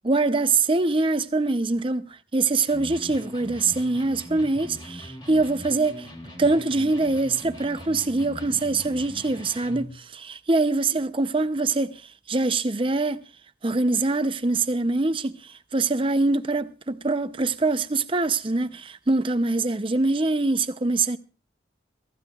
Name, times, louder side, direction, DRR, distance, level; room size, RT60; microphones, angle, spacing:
voice 1, 0.0-6.1 6.4-12.0 12.3-13.2 13.6-21.2, right 3 dB, 30° right, 0.7 m, -24 dB
Electric guitar, 2.7-10.0, left 1 dB, 25° left, 3.0 m, -41 dB
24.0 x 14.5 x 2.4 m
head